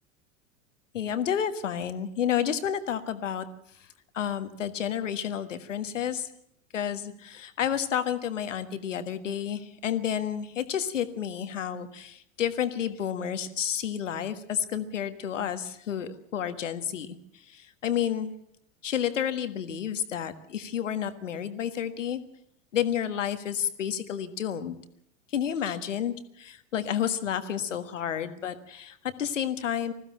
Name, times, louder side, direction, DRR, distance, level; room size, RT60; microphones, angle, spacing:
voice 1, 0.9-3.4 4.1-6.3 6.7-17.2 17.5-18.3 18.8-22.2 22.7-24.8 25.3-29.9, left 9 dB, 70° left, 11 dB, 1.6 m, -30 dB
20.5 x 15.0 x 8.7 m, 0.74 s
figure-of-eight pair, 80°, 39 cm